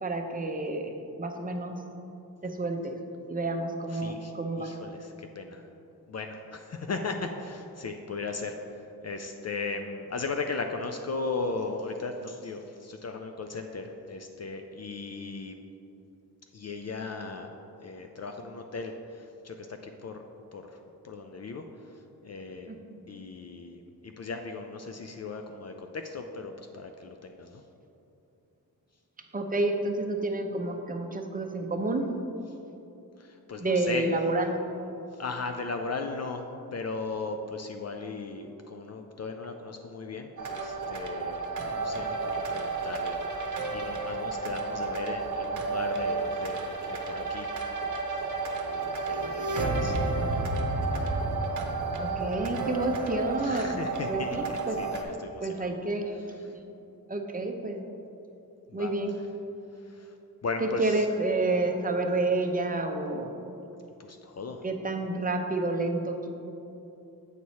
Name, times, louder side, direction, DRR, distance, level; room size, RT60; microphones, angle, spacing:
voice 1, 0.0-1.8 2.4-2.9 3.3-4.7 22.7-23.0 29.3-32.1 33.6-34.5 52.0-53.8 54.1-54.8 55.4-56.1 56.5-56.6 57.1-57.8 58.7-59.1 60.6-63.3 64.6-66.3, right 2 dB, 25° right, 3 dB, 0.6 m, -29 dB
voice 2, 3.9-5.6 6.1-15.6 16.5-17.5 17.8-20.2 20.5-20.8 21.0-21.6 22.2-22.8 23.1-27.6 33.2-34.1 35.1-47.5 48.1-50.0 53.4-55.8 56.4-56.5 58.7-58.9 59.8-60.1 60.4-61.1 64.0-64.6, left 3 dB, 45° left, 5 dB, 0.4 m, -37 dB
sound 1, 40.4-55.0, right 3 dB, 55° right, 0.9 m, -31 dB
8.1 x 4.7 x 4.2 m, 2.9 s
wide cardioid pair, 110°, 36 cm